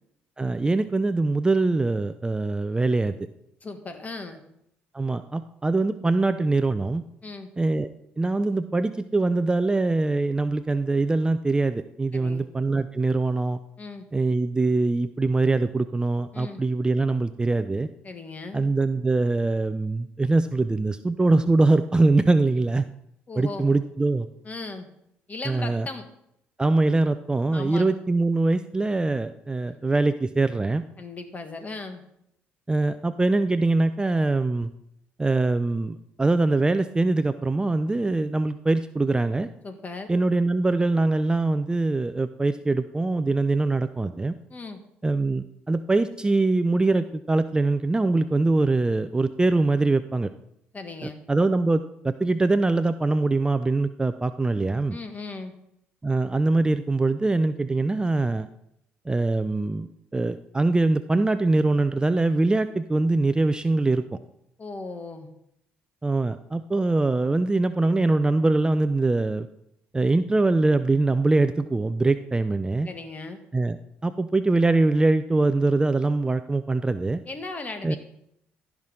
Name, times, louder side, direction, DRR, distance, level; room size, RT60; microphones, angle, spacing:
voice 1, 0.4-3.1 4.9-7.0 7.6-7.9 8.2-13.6 14.1-17.9 18.5-22.8 23.4-24.3 25.5-25.9 26.6-30.8 32.7-34.7 35.2-39.5 40.1-44.3 45.0-50.3 51.0-55.0 56.0-58.5 59.1-64.0 66.0-69.5 69.9-72.9 73.5-73.8 74.0-77.2 77.8-78.0, right 2 dB, 15° right, 11 dB, 0.5 m, -23 dB
voice 2, 3.6-4.4 7.2-7.5 12.1-12.4 13.8-14.1 16.3-16.6 18.0-18.7 23.3-23.7 24.4-24.9 25.3-26.1 27.5-27.8 29.7-29.8 31.0-32.0 39.6-40.1 44.5-44.8 50.7-51.2 54.9-55.5 64.6-65.3 72.8-73.4 77.2-78.0, left 3 dB, 30° left, 7 dB, 1.7 m, -37 dB
14.5 x 5.9 x 3.7 m, 0.78 s
supercardioid pair, 65°, 5 cm